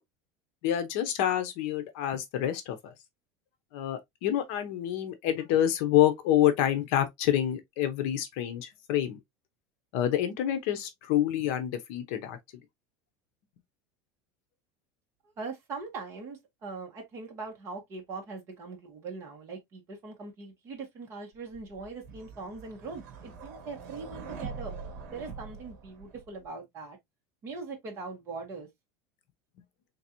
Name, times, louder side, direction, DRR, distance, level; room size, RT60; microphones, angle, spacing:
voice 1, 0.6-2.9 3.7-9.2 9.9-12.4, left 11 dB, 55° left, 0.8 m, -27 dB
voice 2, 15.4-24.7 25.1-27.0 27.4-28.7, right 4 dB, 30° right, 1.5 m, -41 dB
sound 1, 21.5-26.5, right 5 dB, 65° right, 1.5 m, -43 dB
3.9 x 3.3 x 2.9 m
cardioid pair, 180°, 9 cm